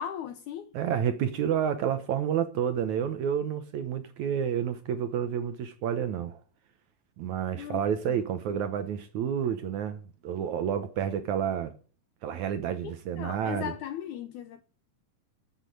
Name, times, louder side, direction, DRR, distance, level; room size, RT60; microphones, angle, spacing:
voice 1, 0.0-0.7 7.6-7.8 8.1-8.2 12.8-14.6, left 10 dB, 75° left, 1.8 m, -37 dB
voice 2, 0.7-6.4 7.2-11.7 12.2-13.7, right 8 dB, 70° right, 1.9 m, -30 dB
9.5 x 8.5 x 9.2 m
omnidirectional pair, 4.2 m